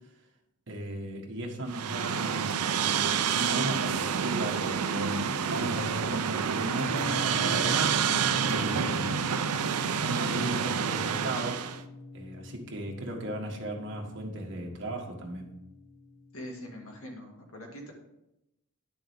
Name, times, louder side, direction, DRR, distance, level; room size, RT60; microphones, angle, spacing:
voice 1, 0.7-3.1 3.3-9.3 9.9-11.7 12.1-15.5, right 1 dB, 55° right, 0 dB, 1.5 m, -36 dB
sound 1, 1.7-11.8, right 7 dB, 85° right, 0.6 m, -28 dB
sound 2, 6.9-17.0, left 2 dB, 15° left, 1.5 m, -43 dB
voice 2, 16.3-17.9, equal, 65° left, 1 dB, 2.1 m, -43 dB
10.0 x 7.0 x 3.6 m, 0.89 s
head